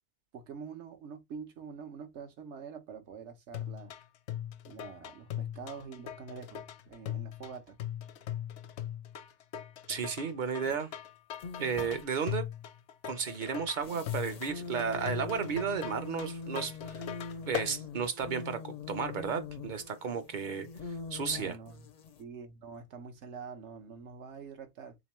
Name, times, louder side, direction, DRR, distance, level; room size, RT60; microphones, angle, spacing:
voice 1, 0.3-3.9 4.7-7.8 21.2-21.9 22.2-25.0, right 6 dB, 75° right, 1.1 m, -46 dB
sound 1, 3.5-17.7, left 10 dB, 80° left, 0.9 m, -40 dB
voice 2, 9.9-10.9 11.6-12.5 13.0-17.0 17.5-21.6, right 6 dB, 50° right, 0.7 m, -33 dB
sound 2, 10.6-10.8 11.3-12.1 13.8-22.2, left 4 dB, 60° left, 0.5 m, -43 dB
3.6 x 3.0 x 3.0 m
omnidirectional pair, 1.2 m